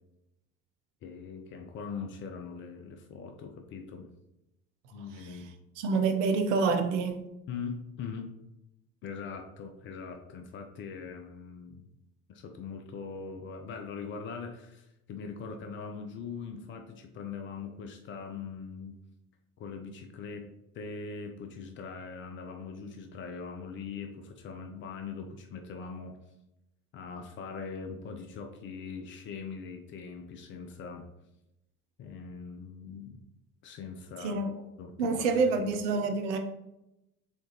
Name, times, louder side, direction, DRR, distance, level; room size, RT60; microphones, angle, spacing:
voice 1, 1.0-4.1 4.9-5.5 7.5-8.3 9.0-11.8 12.3-19.0 19.6-20.5 20.7-26.2 26.9-31.1 32.0-33.2 33.6-34.4 34.8-35.6, left 5 dB, 30° left, 4 dB, 0.5 m, -41 dB
voice 2, 5.8-7.3 34.2-34.5 35.0-36.4, right 4 dB, 55° right, 7 dB, 0.6 m, -27 dB
4.3 x 3.7 x 2.9 m, 0.89 s
figure-of-eight pair, 70°, 45 cm